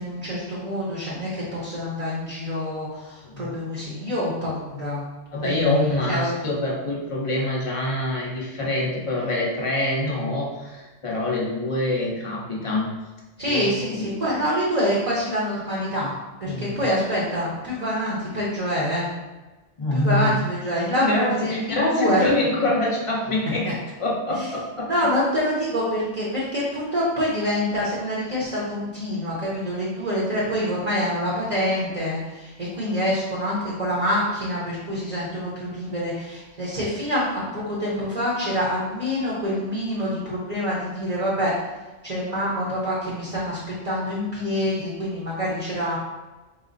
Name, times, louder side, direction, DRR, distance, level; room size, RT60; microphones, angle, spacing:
voice 1, 0.0-5.0 5.4-6.5 13.4-16.1 16.4-19.1 19.9-22.5 23.6-23.7 24.3-24.5 24.9-41.6 42.0-46.0, equal, 35° right, -6 dB, 0.9 m, -26 dB
voice 2, 5.3-12.9 13.4-14.3 16.5-16.9 19.8-20.4 20.9-23.7 24.0-24.9, left 2 dB, 30° left, -4 dB, 0.8 m, -25 dB
4.9 x 2.1 x 3.9 m, 1.1 s
omnidirectional pair, 1.3 m